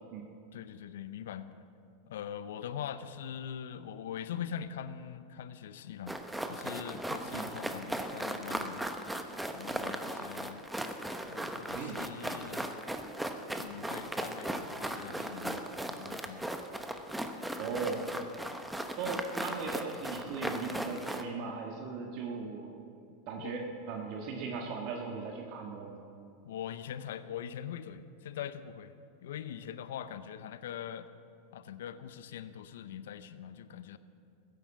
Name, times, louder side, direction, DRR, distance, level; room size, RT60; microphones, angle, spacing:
voice 1, 0.5-1.5 2.1-6.2 6.5-8.9 9.5-10.6 11.2-12.7 13.6-16.5 18.2-18.3 23.4-23.6 26.5-28.9 29.2-31.1 31.5-34.0, left 9 dB, 70° left, 13 dB, 0.7 m, -42 dB
sound 1, 6.1-21.2, right 1 dB, 5° right, 1.0 m, -37 dB
voice 2, 17.6-18.0 19.0-22.7 23.3-25.9, right 4 dB, 55° right, 1 dB, 1.7 m, -38 dB
15.0 x 10.5 x 7.1 m, 2.5 s
hypercardioid pair, 100°, 0 cm